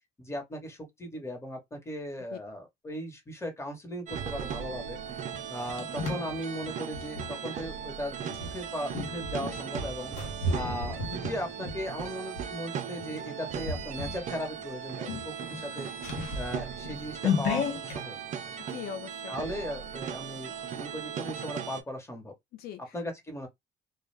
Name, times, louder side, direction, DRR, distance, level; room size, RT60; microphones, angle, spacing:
voice 1, 0.2-5.0 5.5-10.1 10.5-15.9 16.3-18.2 19.3-22.3 22.9-23.5, equal, 15° left, 1.0 m, -37 dB
sound 1, 4.1-21.8, right 8 dB, 45° right, 0.5 m, -38 dB
sound 2, 5.3-7.3 8.3-12.5 13.0-13.2 13.6-14.3 14.6-14.7 15.0-18.0, left 4 dB, 85° left, 0.9 m, -34 dB
voice 2, 10.2-10.7 18.7-19.3 22.5-23.0, left 8 dB, 70° left, 0.4 m, -42 dB
2.3 x 2.1 x 3.2 m
cardioid pair, 110°, 17 cm